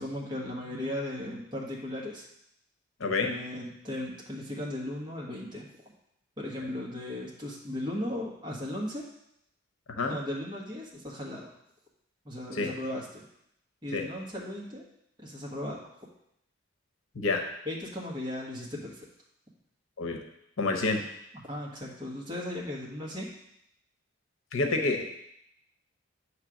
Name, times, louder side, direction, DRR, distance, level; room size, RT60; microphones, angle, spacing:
voice 1, 0.0-2.2 3.2-5.7 6.4-9.0 10.1-11.5 12.2-13.3 13.8-14.8 15.2-15.8 17.6-19.1 21.3-23.3, left 1 dB, 20° right, -4 dB, 1.3 m, -36 dB
voice 2, 3.0-3.3 9.9-10.1 12.5-12.7 13.9-14.0 17.1-17.4 20.0-20.2 20.6-21.0 24.5-25.0, left 3 dB, 80° left, 4 dB, 0.8 m, -28 dB
8.1 x 3.3 x 6.2 m, 0.77 s
head